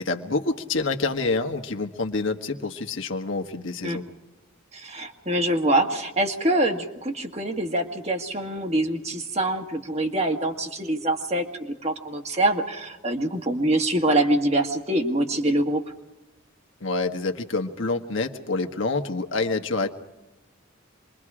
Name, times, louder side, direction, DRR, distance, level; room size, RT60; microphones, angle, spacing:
voice 1, 0.0-4.0 16.8-19.9, left 3 dB, 65° left, 5 dB, 1.4 m, -27 dB
voice 2, 4.7-15.8, right 1 dB, 30° right, 4 dB, 1.8 m, -25 dB
27.5 x 22.5 x 5.0 m, 0.96 s
head